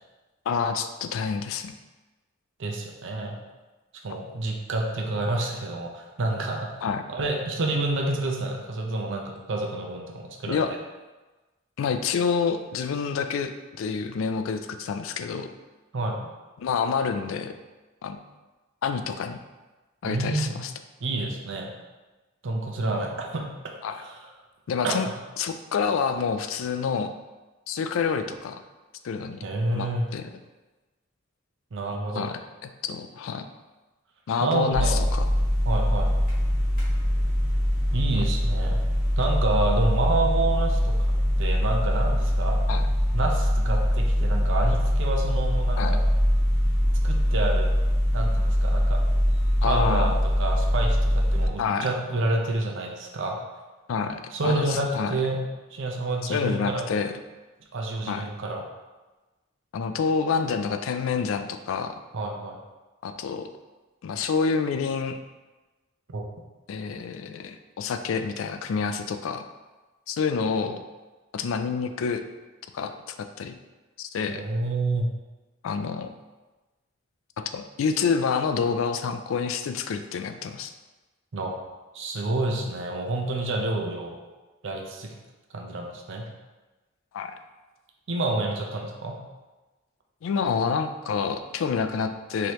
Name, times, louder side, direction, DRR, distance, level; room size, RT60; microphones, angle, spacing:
voice 1, 0.5-1.7 6.8-7.0 10.5-10.7 11.8-13.5 13.8-15.5 16.6-17.5 18.0-18.2 18.8-19.4 20.0-20.7 23.8-24.0 24.7-25.1 25.4-27.1 27.7-28.6 29.0-29.4 29.7-30.3 32.2-33.5 34.3-35.2 42.7-42.9 45.8-46.0 49.6-50.1 51.6-51.9 53.9-55.2 56.3-57.1 58.1-58.2 59.7-61.9 63.0-63.5 64.0-65.2 66.7-69.4 70.1-70.8 71.3-72.2 72.7-73.5 74.0-74.4 75.6-76.1 77.4-80.7 87.1-87.3 90.2-92.5, left 5 dB, 70° left, 8 dB, 0.3 m, -28 dB
voice 2, 2.6-3.4 4.0-6.8 7.1-10.6 15.9-16.2 20.0-20.6 21.0-21.7 22.4-23.5 24.0-24.2 24.8-25.0 29.4-30.0 31.7-32.3 34.4-35.0 35.7-36.1 37.9-38.8 39.2-41.0 41.4-42.6 43.1-46.0 47.0-47.7 48.1-49.0 49.6-53.4 54.3-55.4 55.7-56.9 57.7-58.6 62.1-62.6 66.1-66.2 74.3-75.1 81.3-81.5 81.9-84.2 84.6-85.1 85.5-86.3 88.1-89.2, right 2 dB, 65° right, 1 dB, 0.6 m, -28 dB
sound 1, 34.7-51.5, equal, 45° left, 1.3 m, -23 dB
4.8 x 2.9 x 3.0 m, 1.2 s
head